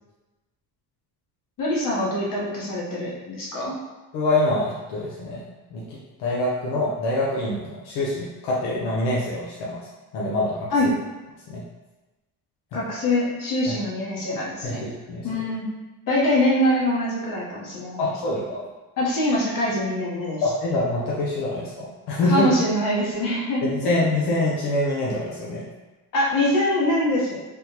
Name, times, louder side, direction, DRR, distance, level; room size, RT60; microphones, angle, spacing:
voice 1, 1.6-3.7 10.7-11.0 12.7-14.8 15.2-15.7 16.1-18.1 19.0-20.4 22.3-23.9 26.1-27.4, left 1 dB, 55° left, -5 dB, 1.1 m, -24 dB
voice 2, 4.1-5.4 5.7-9.8 10.1-10.7 11.5-11.6 13.7-13.8 14.6-15.3 18.0-18.6 20.4-22.5 23.6-25.6, left 1 dB, 80° left, -5 dB, 0.7 m, -25 dB
3.4 x 2.2 x 2.9 m, 1.1 s
cardioid pair, 125°, 40 cm